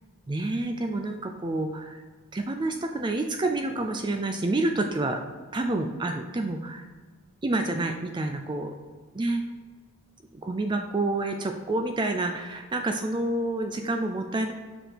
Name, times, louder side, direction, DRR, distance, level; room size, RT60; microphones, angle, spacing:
voice 1, 0.3-2.0 2.3-5.2 5.5-6.9 7.4-8.7 9.1-9.4 10.3-14.5, right 2 dB, 20° right, 5 dB, 0.4 m, -28 dB
5.8 x 4.9 x 5.0 m, 1.5 s
head